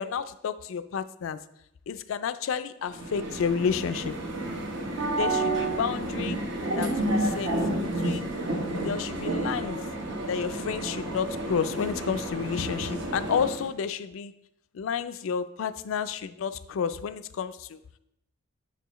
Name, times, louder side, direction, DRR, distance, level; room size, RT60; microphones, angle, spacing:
voice 1, 0.0-1.4 1.9-4.2 5.1-6.4 6.7-8.3 8.7-9.8 10.2-14.3 14.7-17.8, left 7 dB, 70° left, 12 dB, 0.4 m, -31 dB
sound 1, 2.9-13.7, right 1 dB, 60° right, 1.0 m, -30 dB
6.9 x 6.8 x 3.0 m, 0.80 s
head